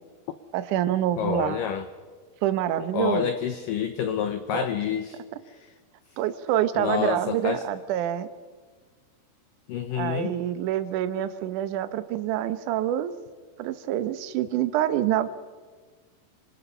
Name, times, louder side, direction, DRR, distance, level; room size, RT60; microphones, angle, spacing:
voice 1, 0.5-1.6 2.4-3.3 4.5-4.7 6.2-8.3 10.0-13.1 13.6-15.3, right 12 dB, 75° right, 11 dB, 1.8 m, -26 dB
voice 2, 1.2-1.9 2.9-5.2 5.5-5.7 6.8-7.6 9.7-10.3, left 9 dB, 75° left, 9 dB, 2.0 m, -28 dB
27.0 x 25.5 x 5.6 m, 1.5 s
omnidirectional pair, 4.9 m